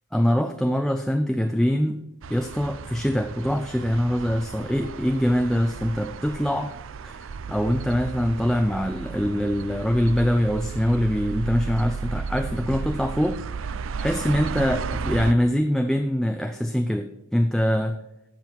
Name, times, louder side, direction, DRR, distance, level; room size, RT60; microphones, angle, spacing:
voice 1, 0.1-2.0 2.3-6.7 7.0-13.4 14.0-18.0, equal, ahead, 6 dB, 0.4 m, -23 dB
sound 1, 2.2-15.3, right 5 dB, 60° right, 0.5 m, -34 dB
12.0 x 7.6 x 4.5 m, 0.90 s
head